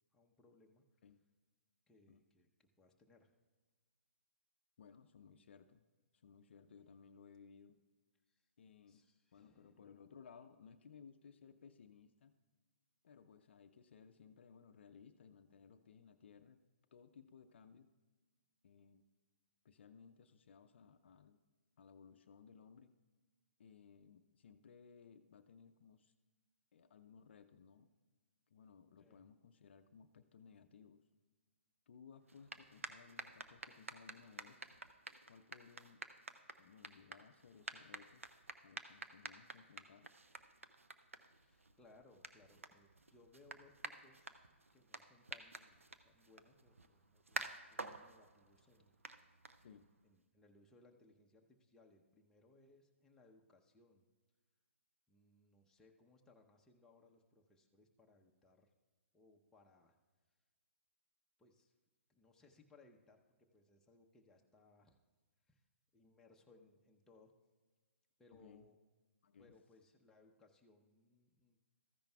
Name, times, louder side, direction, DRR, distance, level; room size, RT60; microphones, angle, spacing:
voice 1, 0.1-0.8 1.9-3.3 8.3-8.5 8.9-9.9 29.0-29.3 41.3-44.5 44.7-49.0 50.0-54.1 55.1-58.7 59.1-60.0 61.4-61.7 62.1-65.0 65.5-65.6 65.9-67.3 68.2-68.8 69.4-71.6, left 2 dB, 5° left, 0 dB, 0.8 m, -67 dB
voice 2, 4.8-5.8 6.2-7.8 8.6-9.0 9.3-12.3 13.0-16.6 16.9-17.9 18.6-19.0 19.6-21.4 21.8-22.9 23.6-26.1 26.7-27.9 28.5-31.0 31.9-34.6 35.3-36.0 36.6-38.3 38.6-40.1 49.6-49.9 68.3-68.7 69.2-69.5, left 6 dB, 55° left, 10 dB, 0.5 m, -61 dB
sound 1, 32.2-50.0, right 3 dB, 85° right, 0.7 m, -51 dB
14.0 x 10.0 x 2.3 m, 1.4 s
figure-of-eight pair, 130°, 7 cm